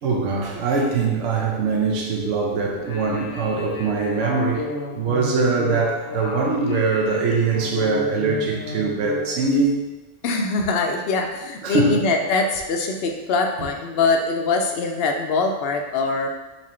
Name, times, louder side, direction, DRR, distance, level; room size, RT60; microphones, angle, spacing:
voice 1, 0.0-4.7 4.9-9.8 11.6-12.0, right 4 dB, 75° right, -1 dB, 1.0 m, -22 dB
sound 1, 2.7-9.4, left 2 dB, 85° left, 1.0 m, -32 dB
voice 2, 10.2-16.3, left 3 dB, 60° left, 3 dB, 0.7 m, -23 dB
4.2 x 2.6 x 4.2 m, 1.1 s
omnidirectional pair, 1.3 m